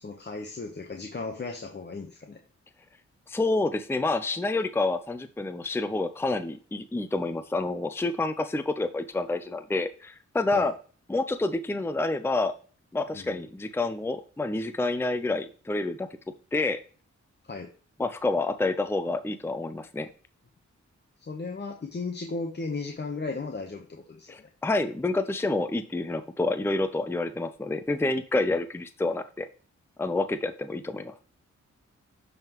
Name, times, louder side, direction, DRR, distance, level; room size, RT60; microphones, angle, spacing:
voice 1, 0.0-2.4 10.5-10.7 13.1-13.4 17.5-17.7 21.3-24.5, left 3 dB, 35° left, 1 dB, 0.9 m, -36 dB
voice 2, 3.3-10.8 11.1-12.5 12.9-16.1 16.5-16.8 18.0-20.1 24.3-29.5 30.0-31.1, left 2 dB, 10° left, 10 dB, 0.5 m, -28 dB
10.5 x 3.8 x 3.0 m, 0.39 s
cardioid pair, 60°, 30 cm